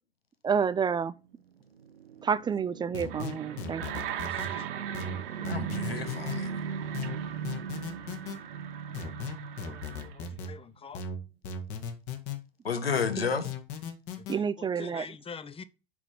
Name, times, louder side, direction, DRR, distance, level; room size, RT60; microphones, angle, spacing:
voice 1, 0.4-1.1 2.2-3.8 13.2-13.3 14.3-15.1, right 6 dB, 15° right, 0.4 m, -29 dB
sound 1, 1.3-10.6, right 7 dB, 80° right, 1.0 m, -39 dB
sound 2, 2.9-4.5 4.9-6.4 6.9-8.4 8.9-10.5 10.9-12.4 12.9-14.4, left 5 dB, 50° left, 1.9 m, -37 dB
sound 3, 3.1-10.2, right 10 dB, 60° right, 1.5 m, -41 dB
voice 2, 4.3-4.7 9.6-11.1 14.2-15.6, left 6 dB, 20° left, 0.8 m, -46 dB
voice 3, 5.4-6.6 12.6-13.5, left 5 dB, 85° left, 1.2 m, -31 dB
6.0 x 5.8 x 6.8 m
figure-of-eight pair, 80°, 29 cm